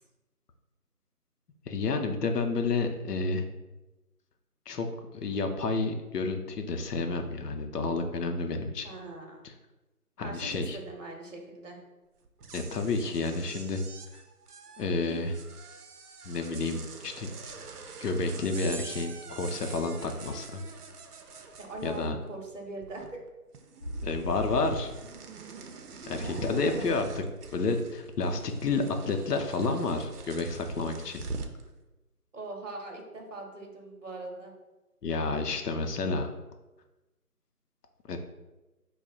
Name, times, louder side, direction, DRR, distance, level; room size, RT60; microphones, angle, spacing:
voice 1, 1.7-3.4 4.7-4.9 5.1-8.9 10.2-10.8 12.5-13.8 14.8-15.3 16.3-17.4 18.0-20.6 21.8-22.2 24.0-24.9 26.1-27.2 27.5-31.2 35.0-36.3 38.1-38.2, left 3 dB, 85° left, 6 dB, 0.6 m, -30 dB
voice 2, 8.8-9.4 10.2-11.8 15.2-15.3 21.6-22.0 22.3-23.2 26.1-26.9 32.3-34.5, right 2 dB, 55° right, 1 dB, 0.9 m, -41 dB
sound 1, 12.3-22.3 22.6-23.3 23.5-31.6, right 4 dB, 75° right, 0.6 m, -44 dB
sound 2, 23.8-27.7 28.2-28.3, left 1 dB, 45° left, 0.6 m, -40 dB
4.7 x 2.1 x 2.4 m, 1.1 s
figure-of-eight pair, 160°, 46 cm